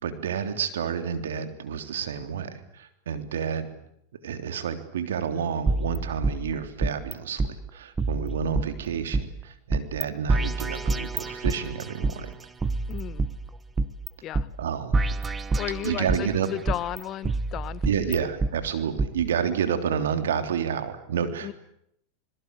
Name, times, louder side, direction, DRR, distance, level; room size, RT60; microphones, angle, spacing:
voice 1, 0.0-3.7 4.2-12.3 14.6-15.0 15.8-16.5 17.8-21.5, right 7 dB, 85° right, 9 dB, 3.4 m, -29 dB
sound 1, 5.7-7.1 7.4-7.5 8.0-9.2 9.7-10.0 10.3-12.1 12.6-14.1 14.3-14.5 14.9-16.3 16.7-18.5 19.0-19.1, right 3 dB, 20° right, 1.5 m, -27 dB
voice 2, 12.9-13.2 14.2-14.5 15.6-17.8 21.4-21.5, left 12 dB, 40° left, 16 dB, 1.5 m, -34 dB
28.0 x 22.0 x 8.4 m, 0.75 s
hypercardioid pair, 110°, 0 cm